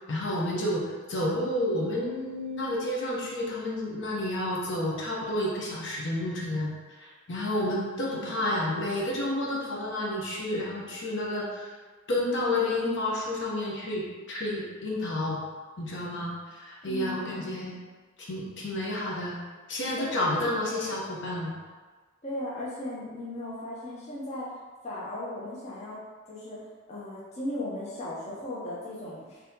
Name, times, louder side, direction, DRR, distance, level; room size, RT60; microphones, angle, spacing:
voice 1, 0.1-6.7 7.0-11.7 12.1-15.4 15.8-17.8 18.2-19.4 19.7-21.6, left 1 dB, 60° left, -4 dB, 0.7 m, -30 dB
voice 2, 16.9-17.6 20.0-20.1 22.2-24.5 24.8-26.0 26.3-26.6 26.9-29.4, left 1 dB, 30° left, -7 dB, 0.7 m, -37 dB
3.9 x 2.7 x 2.7 m, 1.4 s
head